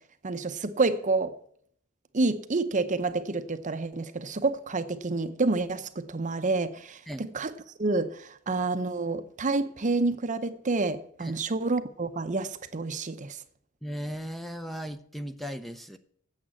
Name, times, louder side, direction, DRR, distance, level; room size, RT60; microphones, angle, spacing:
voice 1, 0.2-1.4 2.1-7.5 7.8-13.4, right 3 dB, 35° right, 0.7 m, -28 dB
voice 2, 13.8-16.0, equal, ahead, 0.6 m, -37 dB
8.8 x 7.5 x 8.4 m
head